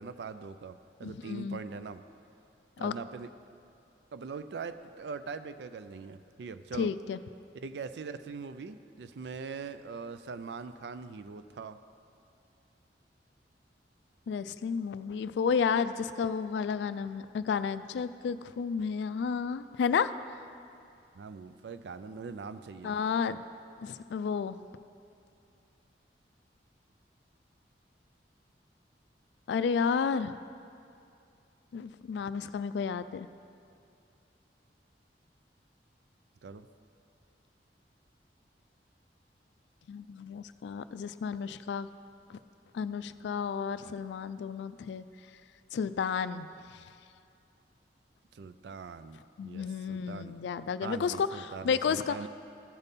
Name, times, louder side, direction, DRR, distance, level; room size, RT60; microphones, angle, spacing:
voice 1, 0.0-2.0 2.8-3.3 4.1-6.9 7.5-11.8 21.1-23.0 36.4-36.7 48.3-50.4 50.8-52.3, right 5 dB, 75° right, 12 dB, 0.4 m, -42 dB
voice 2, 1.0-1.6 2.8-2.9 6.7-7.2 14.3-20.1 22.8-23.4 23.8-24.6 29.5-30.3 31.7-33.3 39.9-41.9 42.3-42.4 42.7-45.0 45.7-46.5 49.4-52.2, left 6 dB, 80° left, 13 dB, 0.3 m, -32 dB
14.0 x 5.2 x 4.1 m, 2.5 s
head